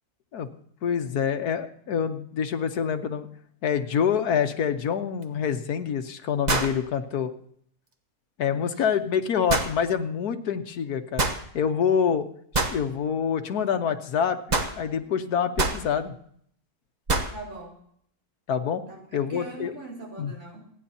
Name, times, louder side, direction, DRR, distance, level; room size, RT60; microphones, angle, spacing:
voice 1, 0.8-3.3 3.6-7.3 8.4-11.3 11.5-12.3 12.7-14.4 14.8-16.1 18.5-18.8 19.1-19.7 20.2-20.3, left 7 dB, 85° left, 8 dB, 1.5 m, -26 dB
sound 1, 5.2-5.3 6.5-6.8 9.5-9.7 11.2-11.4 12.5-12.8 14.5-14.7 15.6-15.8 17.1-17.3, right 2 dB, 30° right, 1.0 m, -25 dB
voice 2, 8.5-8.8 17.3-17.8 18.9-20.6, right 3 dB, 50° right, -1 dB, 3.1 m, -42 dB
28.0 x 9.7 x 2.8 m, 0.65 s
omnidirectional pair, 1.6 m